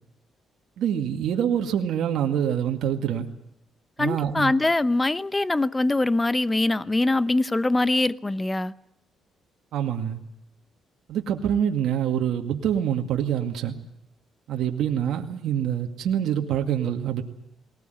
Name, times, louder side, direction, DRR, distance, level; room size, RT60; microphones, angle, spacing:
voice 1, 0.8-3.3 4.0-4.5 9.7-10.2 11.1-13.8 14.5-17.2, right 9 dB, 75° right, 2.1 m, -25 dB
voice 2, 4.0-8.7, left 2 dB, 15° left, 0.8 m, -23 dB
20.0 x 19.5 x 9.3 m
cardioid pair, 90°, 0 cm